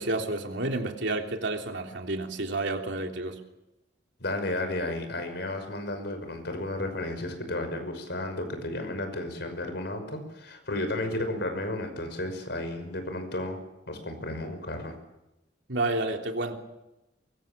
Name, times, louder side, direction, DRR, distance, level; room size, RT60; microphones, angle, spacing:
voice 1, 0.0-3.4 15.7-16.5, right 2 dB, 75° right, 3 dB, 3.3 m, -30 dB
voice 2, 4.2-13.6 13.9-15.0, left 1 dB, 65° left, 7 dB, 5.8 m, -33 dB
24.0 x 23.0 x 7.5 m, 0.94 s
head